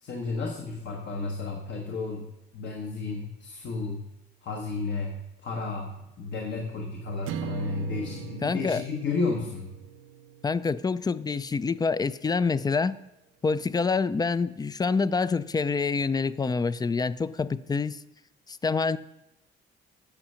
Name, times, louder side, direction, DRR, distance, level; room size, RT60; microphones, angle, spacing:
voice 1, 0.0-4.1 4.4-5.2 5.4-9.7, left 3 dB, 65° left, 1 dB, 1.3 m, -32 dB
sound 1, 7.3-11.6, right 9 dB, 85° right, 0.6 m, -40 dB
voice 2, 8.4-8.8 10.4-13.0 13.4-18.0 18.5-19.0, left 4 dB, 20° left, 16 dB, 0.3 m, -26 dB
8.9 x 5.6 x 6.3 m, 0.93 s
cardioid pair, 90°, 20 cm